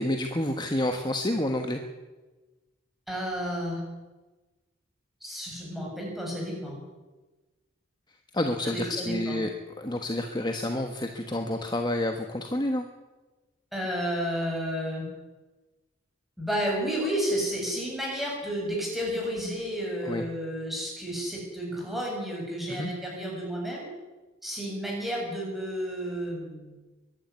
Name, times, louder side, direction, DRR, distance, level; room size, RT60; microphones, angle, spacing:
voice 1, 0.0-1.8 8.3-9.5 9.8-12.9 20.0-20.2 22.7-22.9, left 1 dB, 20° left, 5 dB, 1.3 m, -29 dB
voice 2, 3.1-3.8 5.2-6.8 8.6-9.4 13.7-15.1 16.4-23.9 24.4-26.8, equal, ahead, -2 dB, 7.3 m, -31 dB
23.0 x 12.0 x 9.7 m, 1.2 s
head